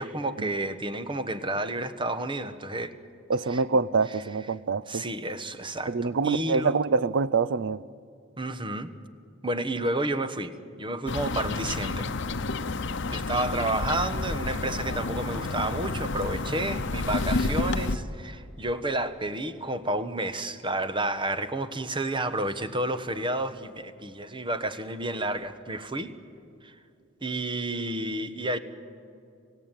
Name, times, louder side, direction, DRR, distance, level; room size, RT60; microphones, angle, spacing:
voice 1, 0.0-2.9 3.5-3.6 4.9-6.8 8.4-8.9 9.4-10.5 10.8-12.1 13.1-26.1 26.6-26.7 27.2-28.6, right 1 dB, 25° right, 1.1 m, -30 dB
voice 2, 3.3-5.0 5.9-7.8 13.5-13.6, right 4 dB, 60° right, 0.5 m, -25 dB
sound 1, 11.1-18.0, left 3 dB, 60° left, 0.9 m, -30 dB
29.5 x 17.0 x 9.0 m
head